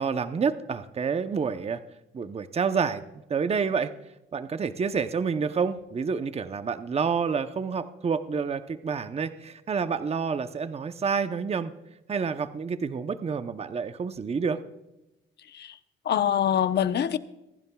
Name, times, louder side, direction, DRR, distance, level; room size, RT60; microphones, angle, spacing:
voice 1, 0.0-1.8 2.1-3.0 3.3-3.9 4.3-11.7 12.1-14.6, right 5 dB, 30° right, 10 dB, 0.7 m, -28 dB
voice 2, 16.0-17.2, left 9 dB, 60° left, 11 dB, 0.9 m, -24 dB
26.5 x 11.0 x 2.3 m, 0.95 s
cardioid pair, 90°, 20 cm